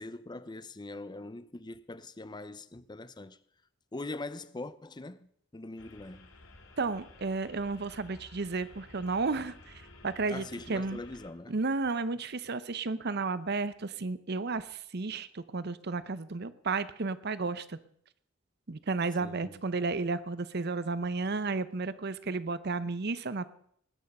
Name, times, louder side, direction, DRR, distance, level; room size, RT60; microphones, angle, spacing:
voice 1, 0.0-3.4 3.9-6.3 10.3-11.6 19.2-19.6, left 2 dB, 20° left, 0.6 m, -42 dB
sound 1, 5.8-11.3, left 2 dB, 85° left, 2.4 m, -54 dB
voice 2, 6.8-9.7 10.0-11.0 11.5-17.8 18.7-23.5, right 3 dB, 55° right, 0.8 m, -33 dB
20.0 x 9.1 x 5.4 m
head